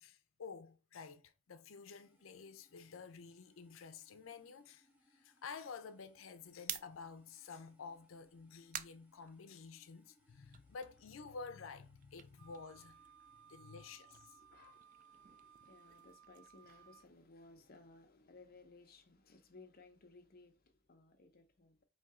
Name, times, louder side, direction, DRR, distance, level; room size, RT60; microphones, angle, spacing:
voice 1, 0.0-13.0 13.5-14.4, left 5 dB, 90° left, 0.5 m, -51 dB
sound 1, 1.5-16.2, equal, 10° right, 1.1 m, -75 dB
sound 2, 6.5-10.0 10.4-13.3 13.6-17.8, right 10 dB, 40° right, 0.3 m, -52 dB
Wind instrument woodwind instrument, 12.4-17.1, right 8 dB, 80° right, 0.7 m, -63 dB
voice 2, 13.3-13.7 14.3-21.8, left 3 dB, 50° left, 0.7 m, -61 dB
4.4 x 2.8 x 3.6 m
head